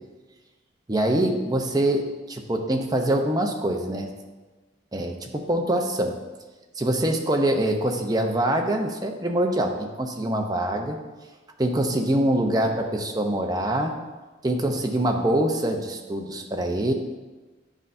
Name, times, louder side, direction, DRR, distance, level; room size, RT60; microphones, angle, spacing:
voice 1, 0.9-4.1 4.9-6.1 6.8-11.0 11.6-13.9 14.4-16.9, right 1 dB, 20° right, 3 dB, 0.6 m, -24 dB
9.8 x 5.5 x 2.6 m, 1.2 s
head